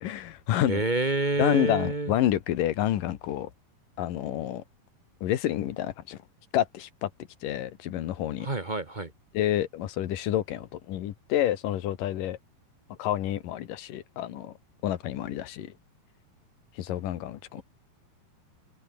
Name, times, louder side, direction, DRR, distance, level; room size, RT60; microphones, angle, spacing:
voice 1, 0.0-0.8 1.4-3.5 4.0-4.6 5.2-6.2 6.5-7.1 7.4-8.5 9.3-12.4 13.0-14.5 14.8-15.7 16.8-17.6, left 12 dB, 65° left, 2.8 m, -29 dB
voice 2, 0.7-2.1 8.4-9.1, right 3 dB, 35° right, 0.7 m, -28 dB
omnidirectional pair, 4.6 m